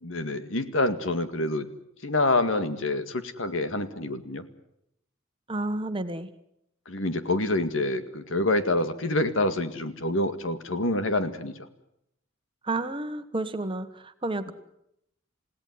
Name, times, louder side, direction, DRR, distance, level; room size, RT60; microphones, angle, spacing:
voice 1, 0.0-1.7 2.0-4.4 6.9-11.5, left 2 dB, 70° left, 10 dB, 2.0 m, -27 dB
voice 2, 5.5-6.3 12.6-14.5, right 2 dB, 25° right, 9 dB, 1.4 m, -31 dB
29.5 x 17.0 x 9.6 m, 0.80 s
head